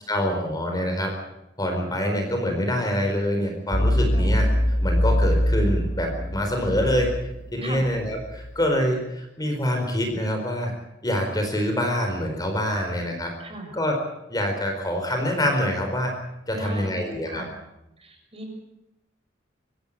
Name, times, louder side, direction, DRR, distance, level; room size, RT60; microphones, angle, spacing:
voice 1, 0.1-1.1 1.6-4.5 4.8-7.1 7.5-10.7 11.0-13.3 13.7-14.0 14.3-16.1 16.5-17.4, equal, 20° left, 3 dB, 4.6 m, -25 dB
sound 1, 3.7-8.5, equal, 45° left, 2.5 m, -23 dB
voice 2, 13.0-13.7 16.5-17.5 18.0-18.6, right 2 dB, 30° right, 3 dB, 6.6 m, -39 dB
24.5 x 16.0 x 8.7 m, 0.90 s
head